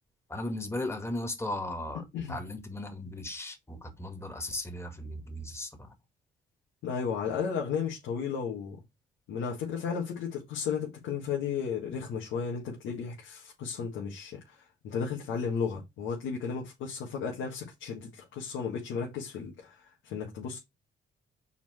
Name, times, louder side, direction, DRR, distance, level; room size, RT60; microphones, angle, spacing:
voice 1, 0.3-5.9, left 1 dB, 15° left, 2.0 m, -37 dB
voice 2, 6.8-8.8 9.3-20.6, left 6 dB, 90° left, 1.9 m, -34 dB
5.9 x 4.4 x 4.3 m
cardioid pair, 90°, 20 cm